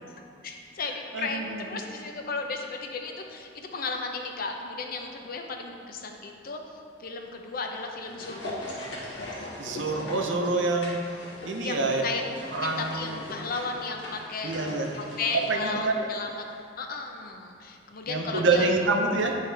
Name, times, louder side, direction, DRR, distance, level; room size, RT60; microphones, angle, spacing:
voice 1, 0.4-6.6 7.0-8.7 11.6-12.2 12.6-16.4 16.8-18.7, left 4 dB, 50° left, 3 dB, 0.6 m, -34 dB
voice 2, 1.1-1.6 9.6-11.0 11.4-12.0 12.5-13.2 14.4-14.9 15.5-16.1 18.1-19.4, right 3 dB, 80° right, 2 dB, 0.7 m, -26 dB
sound 1, 7.6-16.2 16.5-16.6, left 1 dB, 75° left, 1.5 m, -40 dB
9.9 x 3.6 x 3.3 m, 2.4 s
head